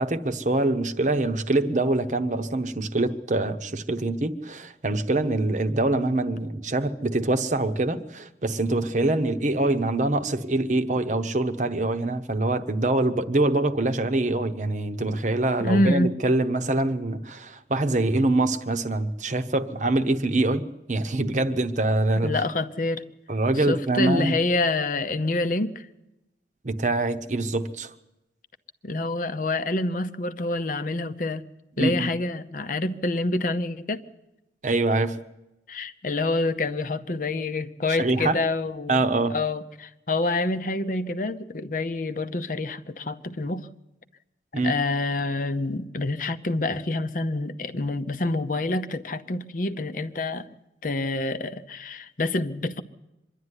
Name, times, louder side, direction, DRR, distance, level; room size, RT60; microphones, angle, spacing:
voice 1, 0.0-22.4 23.3-24.4 26.6-27.9 31.8-32.1 34.6-35.2 37.9-38.4 38.9-39.4 44.5-44.7, right 2 dB, 40° right, 0.9 m, -24 dB
voice 2, 15.6-16.1 22.2-23.0 23.5-25.9 28.8-31.5 31.8-34.0 35.7-39.0 39.3-43.7 44.6-50.5 50.8-52.8, left 2 dB, 45° left, 0.7 m, -27 dB
24.5 x 11.0 x 9.8 m
head